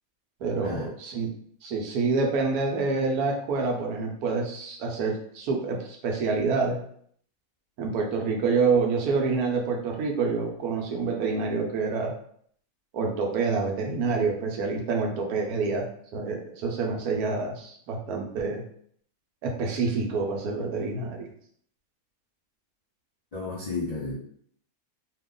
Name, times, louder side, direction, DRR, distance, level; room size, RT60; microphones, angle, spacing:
voice 1, 0.4-1.3 1.6-6.8 7.8-12.1 12.9-15.9 16.1-18.6 19.4-21.2, right 4 dB, 80° right, 1 dB, 1.1 m, -27 dB
voice 2, 23.3-24.1, left 3 dB, 60° left, -5 dB, 0.4 m, -32 dB
2.8 x 2.3 x 3.6 m, 0.63 s
omnidirectional pair, 1.6 m